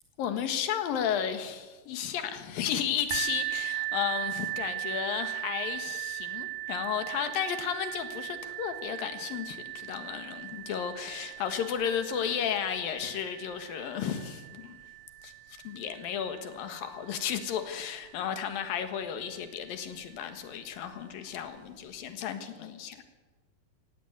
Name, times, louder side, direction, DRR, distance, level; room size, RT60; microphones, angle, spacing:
voice 1, 0.2-14.8 15.2-23.0, left 8 dB, 90° left, 8 dB, 3.4 m, -33 dB
sound 1, 3.1-18.7 19.4-19.5 20.1-20.2, right 17 dB, 75° right, 1.6 m, -38 dB
16.5 x 16.5 x 9.5 m, 1.3 s
omnidirectional pair, 3.9 m